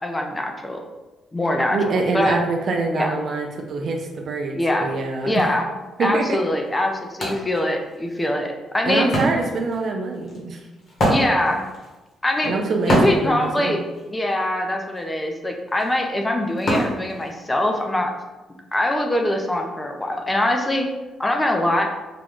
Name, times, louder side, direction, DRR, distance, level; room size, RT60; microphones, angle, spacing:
voice 1, 0.0-0.8 1.3-2.4 2.9-3.2 4.5-4.9 5.2-5.6 6.0-9.1 11.1-11.6 12.2-12.5 12.8-13.8 14.1-18.1 18.7-20.9 21.2-21.8, left 1 dB, 15° left, 2 dB, 0.5 m, -23 dB
voice 2, 1.7-5.5 6.0-6.4 8.8-10.6 12.4-13.8, right 3 dB, 55° right, 3 dB, 0.5 m, -24 dB
Wood, 6.1-6.2 6.6-17.8, equal, 50° left, 1.3 m, -27 dB
3.8 x 2.2 x 3.6 m, 1.1 s
cardioid pair, 90°, 0 cm